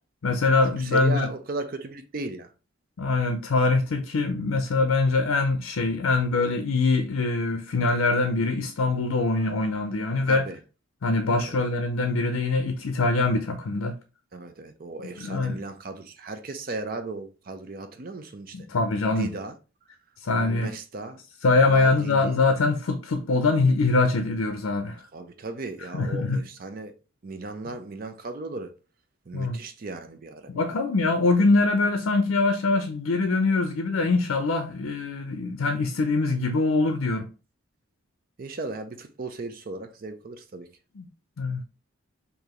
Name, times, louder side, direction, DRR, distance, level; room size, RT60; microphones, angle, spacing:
voice 1, 0.2-1.3 3.0-10.4 11.0-13.9 15.2-15.6 18.5-19.3 20.2-20.7 21.4-25.0 25.9-26.4 29.3-29.6 30.5-37.3 41.0-41.1 41.4-41.6, left 3 dB, 80° left, 0.5 m, -23 dB
voice 2, 0.8-2.5 10.3-10.6 11.5-11.6 14.3-18.7 19.2-19.5 20.3-21.2 21.7-22.4 25.1-26.9 27.2-28.7 29.3-30.8 38.4-40.7, right 3 dB, 45° right, 0.4 m, -36 dB
4.7 x 2.6 x 3.0 m
head